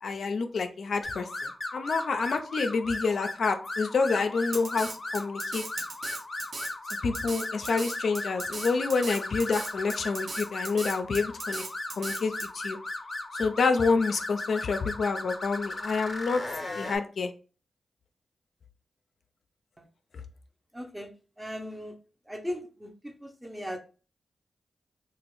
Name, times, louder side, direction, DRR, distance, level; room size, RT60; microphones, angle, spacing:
voice 1, 0.0-5.6 7.0-11.6 12.0-12.8 13.4-16.4 16.8-17.3, left 4 dB, 75° left, 7 dB, 0.4 m, -28 dB
sound 1, 1.0-17.0, left 2 dB, 40° left, 0.7 m, -37 dB
Drum kit, 4.5-12.5, right 3 dB, 65° right, 0.6 m, -38 dB
voice 2, 20.7-22.0 22.2-23.8, equal, 15° right, 4 dB, 0.7 m, -38 dB
3.0 x 2.4 x 3.0 m, 0.35 s
cardioid pair, 50°, 0 cm